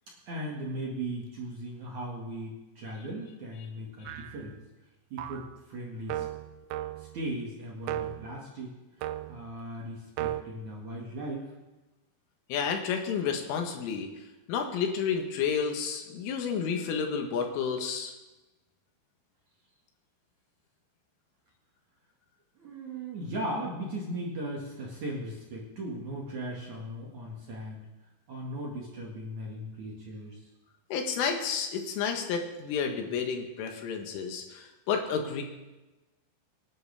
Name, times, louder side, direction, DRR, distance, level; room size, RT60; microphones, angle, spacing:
voice 1, 0.3-4.6 5.1-6.2 7.0-8.8 9.3-11.5 22.6-27.8 28.3-30.5, right 1 dB, 50° right, -3 dB, 2.5 m, -38 dB
sound 1, 4.1-4.5 5.2-5.6 6.1-7.2 7.8-8.3 9.0-9.5 10.2-10.4, right 13 dB, 85° right, 2.6 m, -35 dB
voice 2, 12.5-14.1 14.5-18.1 30.9-35.4, left 6 dB, 80° left, 4 dB, 3.9 m, -31 dB
25.0 x 11.0 x 3.6 m, 1.1 s
omnidirectional pair, 5.8 m